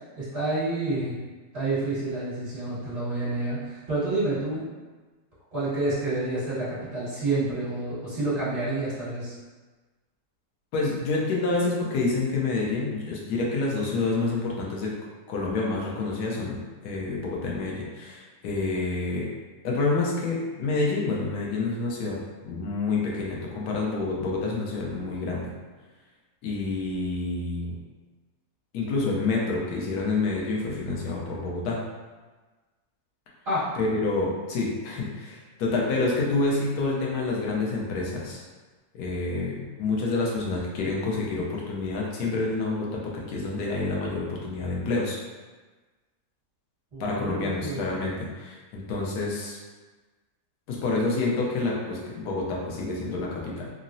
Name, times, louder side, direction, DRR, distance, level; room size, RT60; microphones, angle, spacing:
voice 1, 0.2-1.2 1.5-4.7 5.5-9.3 33.4-33.8 46.9-48.0, right 2 dB, 45° right, -12 dB, 1.7 m, -29 dB
voice 2, 10.7-14.9 15.3-19.3 19.6-22.2 22.4-25.5 26.4-27.8 28.7-31.8 33.7-38.4 38.9-45.2 47.0-49.6 50.7-53.7, left 3 dB, 90° left, -3 dB, 1.2 m, -28 dB
3.6 x 2.0 x 2.6 m, 1.3 s
omnidirectional pair, 1.6 m